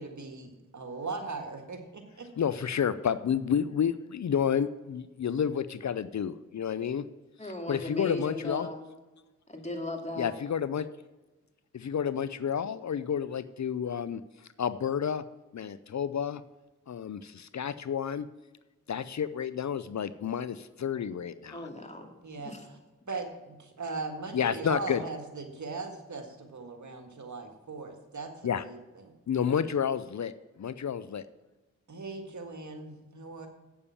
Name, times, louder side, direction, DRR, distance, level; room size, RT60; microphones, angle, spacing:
voice 1, 0.0-2.3 22.2-22.8 23.1-29.1 31.9-33.5, right 3 dB, 65° right, 5 dB, 1.8 m, -39 dB
voice 2, 2.4-7.0 7.7-8.7 10.2-10.9 11.7-14.2 14.6-15.2 15.5-16.4 16.9-18.3 18.9-21.7 24.3-25.0 28.4-28.6 29.3-30.3 30.6-31.2, left 8 dB, 60° left, 14 dB, 0.5 m, -30 dB
voice 3, 7.4-8.8 9.5-10.3 21.5-22.1 22.4-22.6, left 2 dB, 20° left, 3 dB, 2.3 m, -37 dB
8.5 x 7.1 x 7.0 m, 1.1 s
cardioid pair, 40°, 32 cm